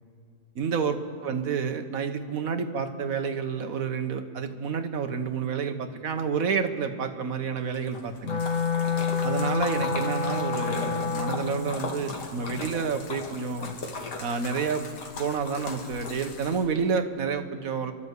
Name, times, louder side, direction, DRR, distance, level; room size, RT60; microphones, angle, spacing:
voice 1, 0.5-1.0 1.2-8.4 9.2-13.7 14.2-14.8 15.2-17.9, right 5 dB, 60° right, 6 dB, 1.5 m, -29 dB
Splash splatter, 7.7-16.9, left 3 dB, 80° left, 2.3 m, -38 dB
Wind instrument woodwind instrument, 8.2-11.6, left 5 dB, 55° left, 1.7 m, -28 dB
30.0 x 12.0 x 8.2 m, 2.4 s
omnidirectional pair, 1.8 m